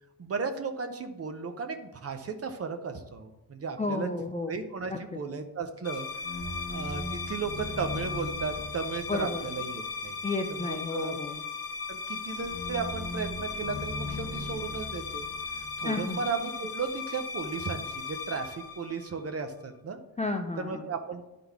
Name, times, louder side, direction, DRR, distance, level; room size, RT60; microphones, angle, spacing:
voice 1, 0.2-4.1 4.5-6.1 6.7-10.2 10.6-11.2 11.9-15.3 15.8-20.0 20.6-21.3, right 5 dB, 40° right, 7 dB, 0.6 m, -35 dB
voice 2, 3.8-4.6 4.9-5.0 9.1-9.4 10.2-11.4 15.8-16.2 20.2-20.9, left 3 dB, 20° left, 4 dB, 0.3 m, -32 dB
sound 1, 5.8-19.5, left 4 dB, 75° left, 1.1 m, -36 dB
11.0 x 3.8 x 3.5 m, 0.99 s
wide cardioid pair, 165°, 38 cm